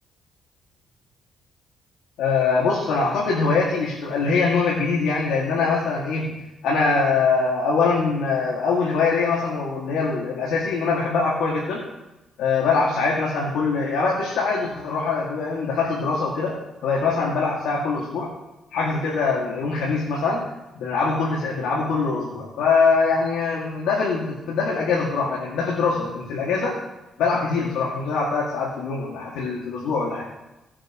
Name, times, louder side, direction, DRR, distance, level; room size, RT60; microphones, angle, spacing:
voice 1, 2.2-11.9 12.4-18.3 18.7-20.5 20.8-26.8 27.2-30.3, left 4 dB, 90° left, -4 dB, 2.3 m, -23 dB
18.0 x 7.5 x 3.1 m, 0.98 s
cardioid pair, 90°, 0 cm